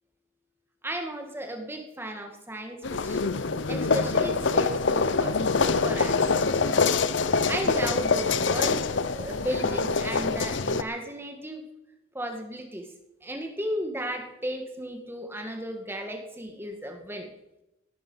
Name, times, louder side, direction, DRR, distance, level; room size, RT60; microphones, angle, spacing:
voice 1, 0.8-3.3 3.7-5.3 5.6-6.2 7.5-8.8 9.1-11.6 12.1-12.9 13.2-17.3, equal, 10° right, 4 dB, 1.8 m, -34 dB
sound 1, 2.8-10.8, left 4 dB, 65° left, 0.7 m, -25 dB
17.5 x 11.5 x 5.6 m, 0.91 s
head